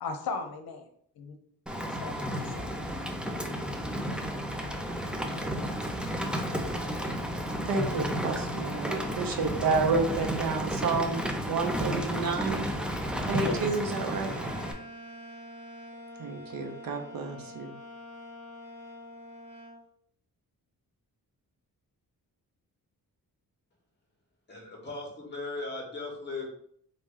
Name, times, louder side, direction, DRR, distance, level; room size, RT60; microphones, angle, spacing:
voice 1, 0.0-0.8 1.2-1.4 1.8-2.7 13.3-13.6, left 4 dB, 80° left, 7 dB, 0.8 m, -36 dB
Rain, 1.7-14.7, equal, 5° right, 0.4 m, -32 dB
voice 2, 7.6-12.7 13.3-14.3 16.2-17.7, right 4 dB, 70° right, 4 dB, 0.8 m, -30 dB
sound 1, 14.0-19.8, equal, 55° right, 1.6 m, -45 dB
voice 3, 24.5-26.5, left 3 dB, 30° left, -1 dB, 1.6 m, -37 dB
4.0 x 3.2 x 3.6 m, 0.66 s
wide cardioid pair, 130°, 36 cm